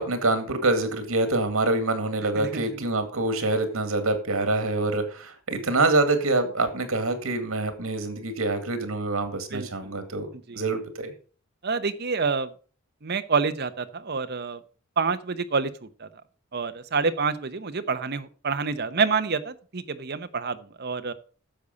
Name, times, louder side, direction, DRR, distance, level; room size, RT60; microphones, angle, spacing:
voice 1, 0.0-11.1, right 2 dB, 85° right, 8 dB, 2.2 m, -26 dB
voice 2, 2.3-2.8 9.5-9.9 10.5-10.6 11.6-12.5 13.0-14.6 15.0-16.1 16.5-21.1, right 5 dB, 50° right, 10 dB, 0.9 m, -28 dB
10.0 x 7.1 x 5.3 m, 0.39 s
head